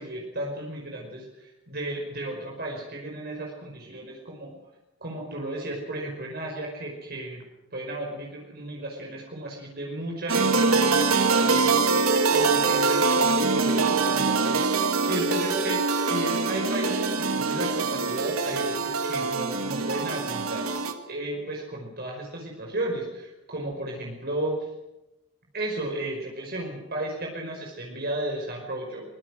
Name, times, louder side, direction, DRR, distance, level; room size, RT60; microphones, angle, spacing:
voice 1, 0.0-4.5 5.0-7.4 7.7-20.7 21.0-24.7 25.5-29.0, right 1 dB, 50° right, -1 dB, 5.5 m, -34 dB
sound 1, 10.3-20.9, right 4 dB, 90° right, 2.8 m, -24 dB
24.0 x 23.0 x 6.3 m, 0.94 s
head